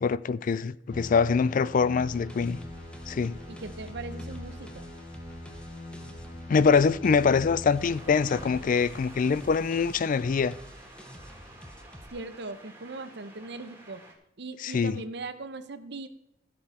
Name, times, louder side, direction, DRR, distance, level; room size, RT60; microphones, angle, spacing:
voice 1, 0.0-2.6 3.1-3.4 6.5-10.6 14.6-14.9, left 5 dB, 45° left, 0.3 m, -24 dB
sound 1, 0.9-8.6, left 1 dB, 70° left, 4.5 m, -42 dB
sound 2, 2.0-12.1, equal, 5° left, 1.0 m, -48 dB
voice 2, 3.5-4.9 12.1-14.0 14.4-16.1, right 3 dB, 65° right, 0.9 m, -39 dB
sound 3, 7.8-14.1, right 1 dB, 15° right, 2.1 m, -50 dB
15.0 x 6.7 x 4.2 m
head